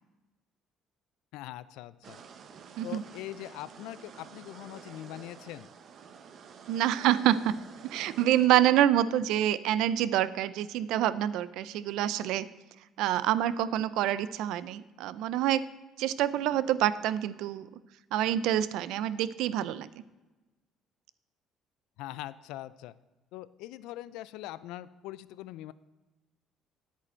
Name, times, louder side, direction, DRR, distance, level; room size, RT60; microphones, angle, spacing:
voice 1, 1.3-2.2 2.8-5.7 22.0-22.9 23.3-25.7, left 14 dB, 85° left, 17 dB, 0.3 m, -42 dB
sound 1, 2.0-8.5, right 6 dB, 55° right, 0.8 m, -50 dB
voice 2, 6.7-7.6 7.8-12.5 13.0-15.6 16.0-17.7 18.1-19.9, right 12 dB, 80° right, 15 dB, 0.4 m, -27 dB
10.0 x 8.4 x 4.3 m, 1.1 s
cardioid pair, 105°, 0 cm